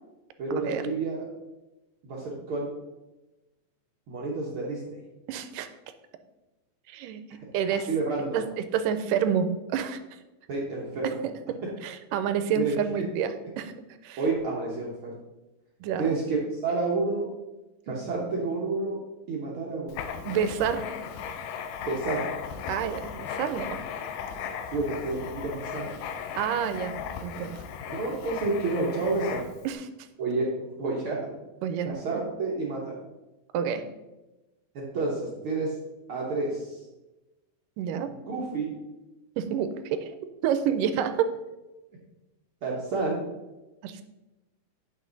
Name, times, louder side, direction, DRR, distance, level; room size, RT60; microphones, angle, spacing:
voice 1, 0.4-1.3 2.0-2.7 4.1-5.0 7.9-8.4 10.5-11.2 12.5-13.0 14.2-15.1 16.0-17.3 17.9-19.0 19.3-20.0 21.8-22.2 24.7-25.9 27.9-29.4 30.2-30.5 30.8-31.3 31.8-33.0 34.7-35.7 36.1-36.8 38.3-38.7 42.6-43.2, right 3 dB, 60° right, -3 dB, 1.4 m, -29 dB
voice 2, 5.3-5.7 6.9-7.2 7.5-7.9 8.3-10.0 11.2-13.7 14.0-14.2 15.8-16.2 20.3-20.9 22.7-24.1 26.4-26.9 27.2-27.6 29.6-29.9 31.6-32.2 33.5-33.8 37.8-38.1 39.4-40.2 40.4-41.3 43.8-44.0, right 8 dB, 80° right, 10 dB, 2.1 m, -29 dB
Writing, 19.9-29.7, left 7 dB, 80° left, 2.2 m, -36 dB
8.4 x 6.1 x 4.0 m, 1.0 s
omnidirectional pair, 3.9 m